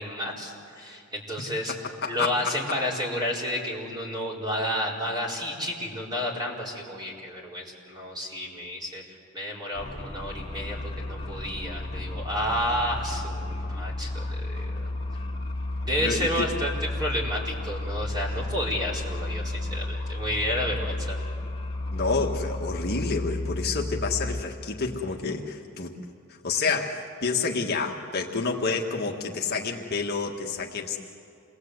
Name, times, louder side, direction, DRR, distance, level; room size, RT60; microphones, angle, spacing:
voice 1, 0.0-1.7 2.0-9.0 9.3-14.8 15.8-21.2, equal, 20° right, -3 dB, 4.7 m, -31 dB
voice 2, 2.0-2.5 16.0-16.5 21.9-25.9 26.4-31.0, left 4 dB, 50° left, 1 dB, 1.7 m, -29 dB
sound 1, 9.7-24.4, left 2 dB, 25° left, 2.4 m, -32 dB
28.0 x 21.0 x 8.1 m, 2.4 s
head